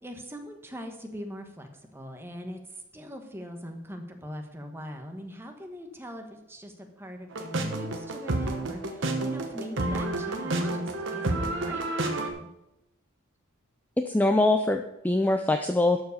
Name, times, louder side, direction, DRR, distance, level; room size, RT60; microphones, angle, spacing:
voice 1, 0.0-12.5, equal, 10° right, 4 dB, 1.1 m, -42 dB
sound 1, 7.3-12.3, right 2 dB, 60° right, 1.1 m, -30 dB
voice 2, 14.1-16.0, left 2 dB, 10° left, 6 dB, 0.4 m, -23 dB
12.0 x 4.8 x 6.4 m, 0.90 s
head